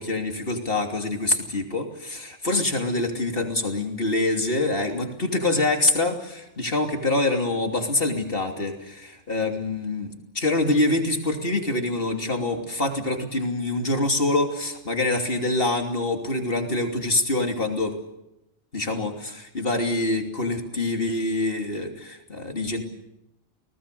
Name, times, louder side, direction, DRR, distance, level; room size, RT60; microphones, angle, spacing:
voice 1, 0.0-18.0 18.7-22.8, left 2 dB, 50° left, 3 dB, 3.2 m, -25 dB
30.0 x 19.5 x 6.9 m, 0.86 s
omnidirectional pair, 1.3 m